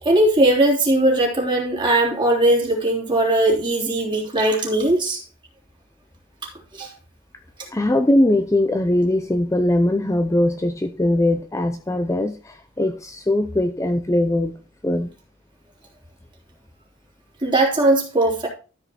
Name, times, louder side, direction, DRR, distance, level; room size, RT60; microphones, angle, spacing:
voice 1, 0.0-5.2 6.7-6.9 17.4-18.5, right 1 dB, 25° right, -1 dB, 3.4 m, -19 dB
voice 2, 7.7-14.5 14.8-15.1, left 1 dB, 15° left, 7 dB, 0.6 m, -20 dB
13.0 x 5.3 x 4.3 m, 0.35 s
head